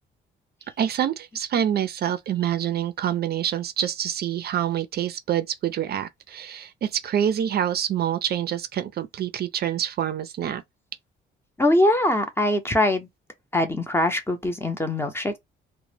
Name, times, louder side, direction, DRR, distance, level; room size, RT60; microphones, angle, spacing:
voice 1, 0.8-10.6, right 10 dB, 55° right, 0.4 m, -26 dB
voice 2, 11.6-13.1 13.5-15.4, left 1 dB, 10° left, 0.6 m, -22 dB
2.1 x 2.0 x 3.2 m
cardioid pair, 90°, 20 cm